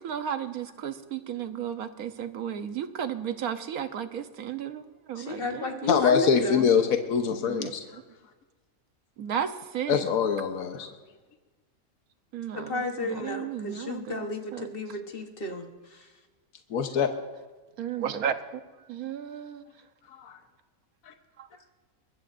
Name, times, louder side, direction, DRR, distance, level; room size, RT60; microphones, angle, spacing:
voice 1, 0.0-4.8 5.1-6.1 7.4-7.7 9.2-10.0 12.3-14.7 17.8-18.4 18.9-19.6 21.4-21.5, right 8 dB, 90° right, 9 dB, 1.4 m, -34 dB
voice 2, 5.2-6.7 12.5-16.1, left 3 dB, 40° left, 4 dB, 1.3 m, -33 dB
voice 3, 5.9-7.8 9.9-10.9 16.7-17.1 20.1-20.4 21.0-21.1, left 6 dB, 70° left, 5 dB, 1.4 m, -24 dB
23.0 x 20.5 x 2.6 m, 1.3 s
omnidirectional pair, 1.5 m